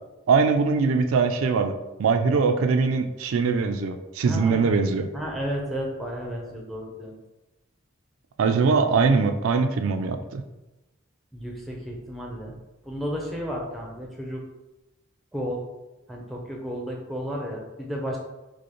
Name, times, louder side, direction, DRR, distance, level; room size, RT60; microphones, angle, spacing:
voice 1, 0.3-1.7 2.0-5.1 8.4-10.4, right 4 dB, 90° right, 6 dB, 0.4 m, -22 dB
voice 2, 4.3-4.7 5.1-7.1 8.5-8.7 11.3-12.6 12.8-14.4 15.3-15.6 16.1-18.2, equal, ahead, -1 dB, 0.6 m, -32 dB
5.0 x 2.1 x 2.9 m, 0.99 s
head